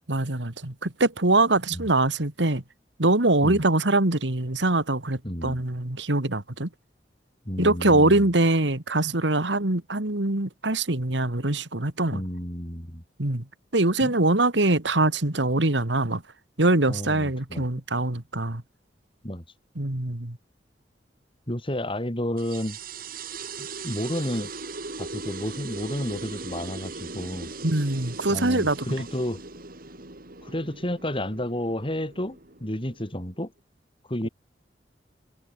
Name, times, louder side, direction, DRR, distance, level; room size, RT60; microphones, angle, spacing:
voice 1, 0.1-2.6 3.0-6.7 7.6-12.2 13.2-13.5 13.7-16.2 16.6-18.6 19.8-20.4 27.6-28.9, right 2 dB, 85° right, 2.5 m, -23 dB
voice 2, 5.2-5.6 7.4-8.2 12.1-13.0 14.0-14.1 16.9-17.7 19.2-19.4 21.5-22.8 23.6-24.5 25.0-27.5 28.3-29.4 30.4-33.5 34.1-34.3, left 1 dB, 30° left, 4.9 m, -31 dB
sound 1, 22.4-33.4, right 3 dB, 55° right, 4.5 m, -39 dB
head